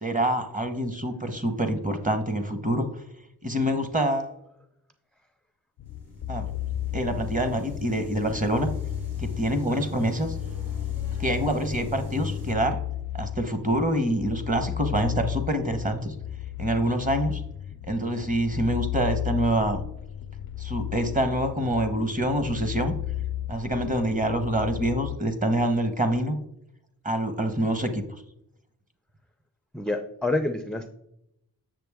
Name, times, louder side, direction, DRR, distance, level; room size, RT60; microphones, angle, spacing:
voice 1, 0.0-3.0 3.4-4.3 6.3-6.4 6.9-8.7 9.2-10.4 11.2-12.8 13.1-16.1 16.6-17.4 17.9-19.8 20.6-22.9 23.5-26.4 27.0-28.0, right 1 dB, 20° right, 7 dB, 1.0 m, -26 dB
sound 1, 5.8-25.2, left 12 dB, 70° left, 0.5 m, -34 dB
sound 2, 5.9-12.5, left 4 dB, 40° right, 3.0 m, -38 dB
voice 2, 29.7-30.9, left 2 dB, ahead, 6 dB, 0.5 m, -27 dB
7.8 x 6.7 x 3.5 m, 0.79 s
wide cardioid pair, 90°, 38 cm